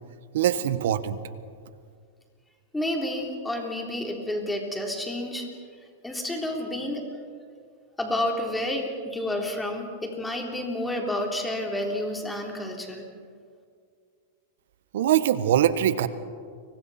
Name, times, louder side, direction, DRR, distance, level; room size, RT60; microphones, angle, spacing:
voice 1, 0.3-1.2 14.9-16.1, right 11 dB, 75° right, 13 dB, 1.2 m, -22 dB
voice 2, 2.7-5.5 6.0-7.1 8.0-13.1, left 1 dB, 5° left, 1 dB, 3.6 m, -30 dB
29.5 x 24.0 x 4.3 m, 2.1 s
supercardioid pair, 135°, 0 cm